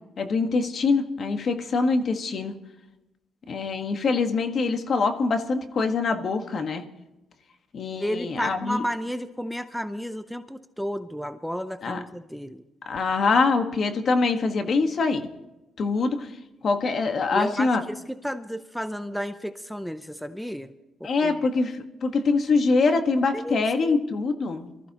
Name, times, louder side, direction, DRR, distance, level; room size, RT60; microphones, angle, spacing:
voice 1, 0.2-2.5 3.5-6.8 7.7-8.8 11.8-12.0 12.9-15.2 15.8-16.3 16.6-17.8 21.0-24.7, left 4 dB, 50° left, 7 dB, 1.5 m, -24 dB
voice 2, 8.0-12.6 17.3-20.7 21.0-21.4 23.3-24.0, equal, ahead, 11 dB, 0.6 m, -32 dB
24.0 x 14.5 x 3.0 m, 1.0 s
cardioid pair, 90°, 0 cm